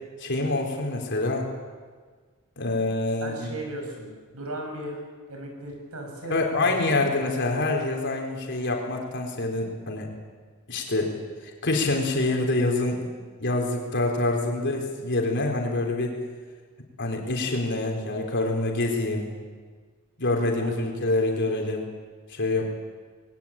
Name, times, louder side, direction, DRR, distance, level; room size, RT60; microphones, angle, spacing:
voice 1, 0.2-1.5 2.6-3.5 6.3-10.1 10.7-11.1 11.6-13.1 13.4-16.2 17.0-19.3 20.2-21.9 22.3-22.7, left 2 dB, 55° left, 1 dB, 4.1 m, -26 dB
voice 2, 3.2-7.3 14.6-14.8 20.6-20.9, right 1 dB, 80° right, 2 dB, 6.6 m, -37 dB
21.5 x 18.5 x 8.9 m, 1.5 s
head